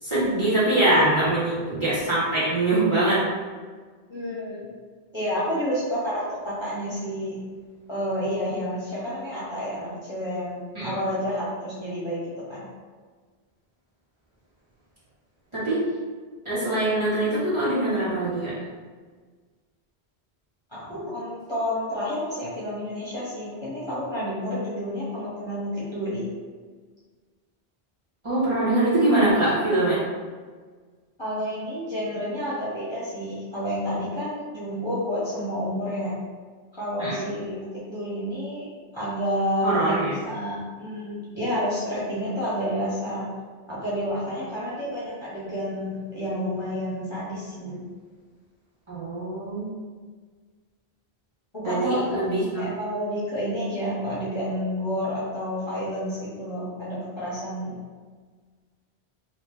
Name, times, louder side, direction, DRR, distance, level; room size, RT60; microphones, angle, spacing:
voice 1, 0.0-3.3 10.7-10.9 15.5-15.9 16.4-18.6 28.2-30.0 37.0-37.2 39.6-40.1 48.9-49.7 51.6-52.6, right 1 dB, 30° right, -12 dB, 1.5 m, -23 dB
voice 2, 4.1-4.7 5.1-7.3 7.9-12.6 20.7-26.3 31.2-36.2 36.7-38.6 38.9-43.2 43.7-47.8 51.5-57.8, equal, 25° left, -10 dB, 1.0 m, -30 dB
3.0 x 2.8 x 3.3 m, 1.5 s
omnidirectional pair, 1.1 m